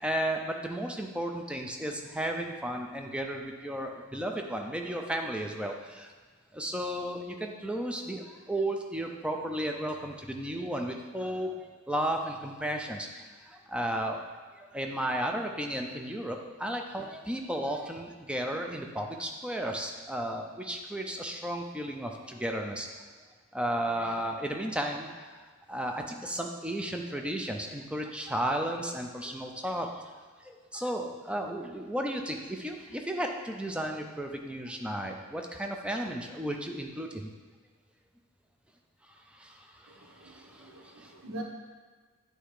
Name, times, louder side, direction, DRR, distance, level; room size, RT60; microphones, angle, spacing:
voice 1, 0.0-6.1 6.5-11.5 11.9-14.2 14.6-22.9 23.5-30.0 30.4-37.3 39.3-41.1, right 1 dB, 5° right, 2 dB, 0.5 m, -34 dB
voice 2, 39.9-41.4, right 2 dB, 85° right, -1 dB, 1.2 m, -44 dB
8.3 x 3.3 x 4.8 m, 1.5 s
head